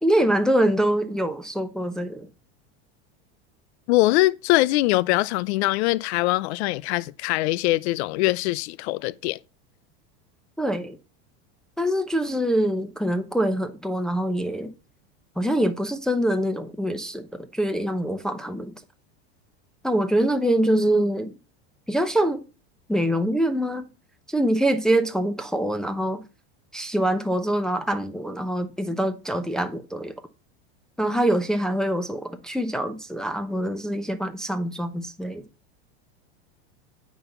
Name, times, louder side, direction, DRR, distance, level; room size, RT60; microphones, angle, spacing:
voice 1, 0.0-2.3 10.6-11.0 11.8-14.7 15.4-18.7 19.8-21.3 21.9-22.4 22.9-23.9 24.3-26.2 26.7-30.1 31.0-35.4, right 1 dB, ahead, 0.8 m, -24 dB
voice 2, 3.9-9.4, left 19 dB, 75° left, 0.6 m, -22 dB
9.2 x 4.0 x 7.1 m
supercardioid pair, 130°, 33 cm